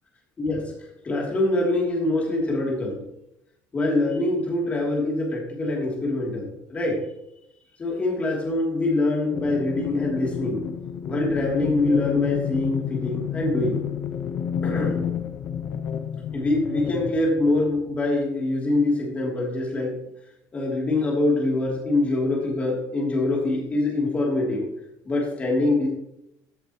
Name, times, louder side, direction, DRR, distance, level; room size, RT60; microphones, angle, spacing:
voice 1, 0.4-0.7 1.0-3.0 3.7-7.0 7.8-10.6 11.1-13.8 14.6-15.0 16.3-20.0 20.5-24.7 25.0-25.9, left 2 dB, 20° left, -2 dB, 2.9 m, -24 dB
sound 1, 9.3-18.1, left 8 dB, 45° left, 0.8 m, -30 dB
15.0 x 8.0 x 3.0 m, 0.80 s
cardioid pair, 180°, 7 cm